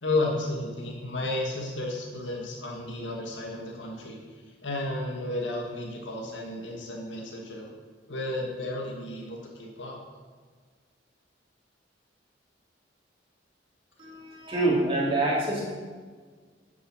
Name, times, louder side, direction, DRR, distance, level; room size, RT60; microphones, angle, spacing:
voice 1, 0.0-4.2 4.6-7.7 8.1-10.0, left 2 dB, 80° left, -1 dB, 1.8 m, -32 dB
voice 2, 14.0-15.7, right 2 dB, 30° right, -4 dB, 2.6 m, -26 dB
9.6 x 7.0 x 6.2 m, 1.5 s
head